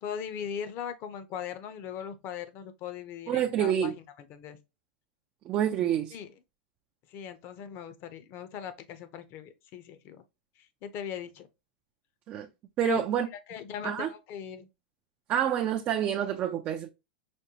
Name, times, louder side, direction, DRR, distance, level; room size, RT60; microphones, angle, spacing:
voice 1, 0.0-3.9 4.3-4.6 6.1-6.3 7.1-10.2 10.6-11.5 12.8-13.0 13.5-14.7, left 8 dB, 40° left, 0.7 m, -39 dB
voice 2, 3.3-3.9 5.4-6.2 12.3-12.5 12.8-13.3 13.8-14.1 15.3-16.9, right 10 dB, 35° right, 0.4 m, -27 dB
5.1 x 2.2 x 2.8 m
supercardioid pair, 130°, 6 cm